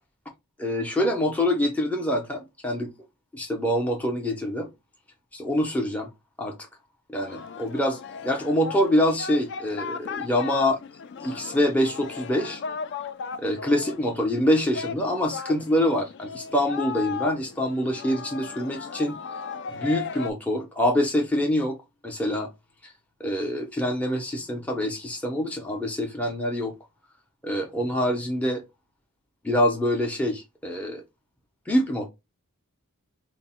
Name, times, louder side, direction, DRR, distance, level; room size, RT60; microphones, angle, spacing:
voice 1, 0.6-2.9 3.3-4.7 5.3-6.1 6.4-6.5 7.1-10.8 11.2-12.6 13.4-19.2 19.8-21.8 22.0-22.5 22.8-22.9 23.2-26.7 27.4-28.6 29.4-31.0 31.7-32.1, left 1 dB, 5° left, 0.6 m, -25 dB
Singing, 7.2-20.3, left 6 dB, 50° left, 0.4 m, -36 dB
4.4 x 2.0 x 4.2 m
head